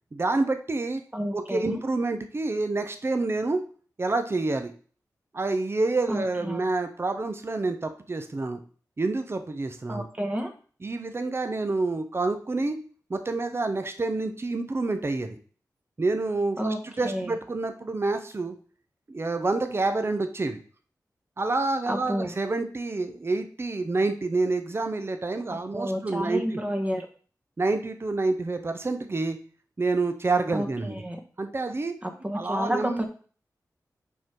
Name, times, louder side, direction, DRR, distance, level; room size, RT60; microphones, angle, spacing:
voice 1, 0.1-1.0 1.3-3.6 4.0-4.7 5.3-8.6 9.0-10.1 10.8-12.8 13.1-15.4 16.0-18.6 19.1-20.6 21.4-26.6 27.6-29.4 29.8-31.0 31.4-31.9 32.3-33.0, right 3 dB, 35° right, 8 dB, 0.8 m, -28 dB
voice 2, 1.1-1.8 6.1-6.6 9.9-10.5 16.6-16.8 17.0-17.3 21.9-22.3 25.5-27.1 30.5-31.2 32.0-33.1, equal, 20° right, 3 dB, 1.3 m, -30 dB
5.5 x 4.7 x 4.5 m, 0.42 s
wide cardioid pair, 70°, 7 cm